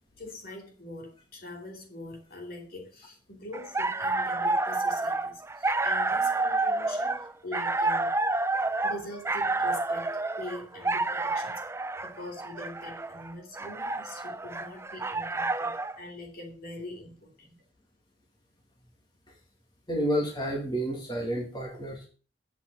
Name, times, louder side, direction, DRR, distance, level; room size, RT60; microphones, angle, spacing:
voice 1, 0.2-8.1 8.8-11.6 12.0-17.6, left 1 dB, 55° left, 2.9 m, -43 dB
sound 1, 3.5-16.0, right 2 dB, 15° right, 0.4 m, -29 dB
voice 2, 19.9-22.1, equal, 25° left, 2.1 m, -30 dB
8.3 x 5.8 x 7.5 m
head